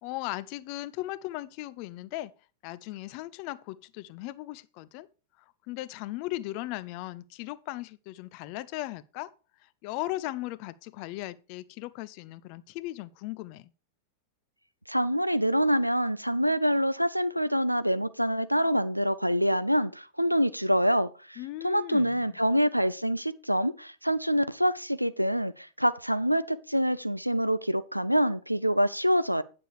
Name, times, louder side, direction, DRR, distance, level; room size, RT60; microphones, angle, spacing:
voice 1, 0.0-2.3 2.6-5.1 5.7-9.3 9.6-13.7 21.4-22.4, left 17 dB, 45° left, 0.5 m, -37 dB
voice 2, 14.9-21.4 21.6-29.4, equal, 90° right, 0.5 m, -26 dB
9.0 x 6.7 x 4.8 m
figure-of-eight pair, 90°, 0 cm